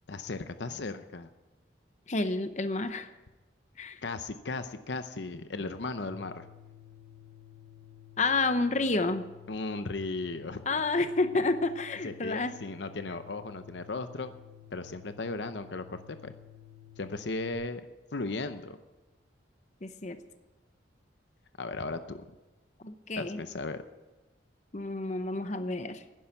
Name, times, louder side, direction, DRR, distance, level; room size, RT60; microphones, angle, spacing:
voice 1, 0.1-1.3 4.0-6.5 9.5-10.8 12.0-14.3 14.7-16.3 17.0-17.8 18.1-18.8 21.6-22.3 23.2-23.8, left 3 dB, 65° left, 10 dB, 0.7 m, -36 dB
voice 2, 2.1-3.1 3.8-4.0 8.2-9.3 10.7-12.5 19.8-20.2 22.8-23.4 24.7-26.0, left 3 dB, 40° left, 10 dB, 0.8 m, -29 dB
sound 1, 6.1-17.5, left 9 dB, 55° right, 4.9 m, -53 dB
11.5 x 10.5 x 8.8 m, 1.1 s
head